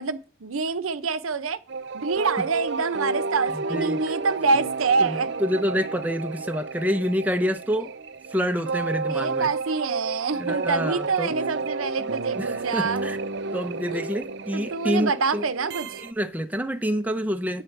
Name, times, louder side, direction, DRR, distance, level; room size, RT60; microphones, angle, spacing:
voice 1, 0.0-1.6 1.9-5.4 9.1-13.1 13.9-14.0 14.5-15.9, right 4 dB, 90° right, 0.8 m, -26 dB
sound 1, 1.7-16.1, right 4 dB, 55° right, 0.5 m, -31 dB
voice 2, 3.7-4.0 5.0-7.9 8.3-9.5 10.3-11.3 12.3-13.2 13.5-15.5 16.0-17.6, equal, 10° right, 0.6 m, -27 dB
8.9 x 7.2 x 4.5 m
head